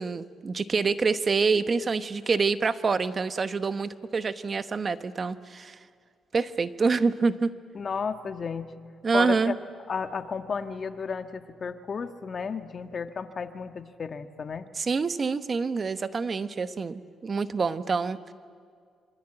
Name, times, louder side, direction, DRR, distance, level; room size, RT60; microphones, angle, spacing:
voice 1, 0.0-5.8 6.3-7.5 9.0-9.6 14.8-18.2, right 4 dB, 40° right, 12 dB, 1.0 m, -26 dB
voice 2, 7.7-8.7 9.1-9.5 9.9-14.7, left 5 dB, 45° left, 8 dB, 1.5 m, -33 dB
25.5 x 25.0 x 9.0 m, 2.1 s
cardioid pair, 90°, 0 cm